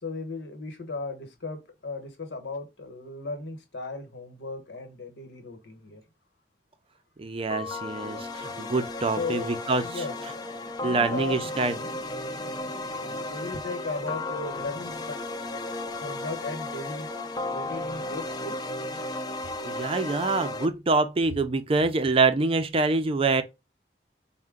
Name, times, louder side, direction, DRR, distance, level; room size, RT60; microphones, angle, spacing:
voice 1, 0.0-6.0 8.6-8.7 9.2-15.2 16.0-17.1 17.5-19.0, left 3 dB, 80° left, 1.1 m, -37 dB
voice 2, 7.2-9.8 10.8-11.7 19.6-23.4, right 3 dB, 35° right, 0.5 m, -25 dB
sound 1, 7.5-20.7, left 2 dB, 25° left, 0.4 m, -34 dB
4.3 x 2.1 x 3.6 m
head